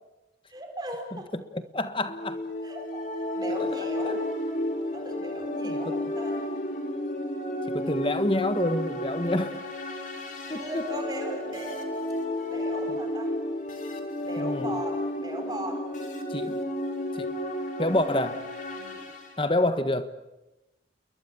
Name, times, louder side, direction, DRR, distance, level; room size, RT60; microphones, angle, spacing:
voice 1, 0.5-1.3 2.6-3.0 3.4-4.2 4.9-6.4 10.5-11.9 12.5-13.3 14.2-15.8 18.7-19.1, equal, 25° right, 4 dB, 4.5 m, -37 dB
voice 2, 1.3-2.4 3.6-3.8 4.0-4.2 5.6-5.8 7.7-9.7 10.5-10.9 14.4-14.7 16.3-16.6 17.2-17.3 17.8-18.4 19.4-20.1, left 1 dB, 30° left, 10 dB, 1.5 m, -28 dB
sound 1, 2.1-19.3, left 1 dB, 45° left, 3.7 m, -32 dB
29.5 x 22.0 x 7.4 m, 0.99 s
head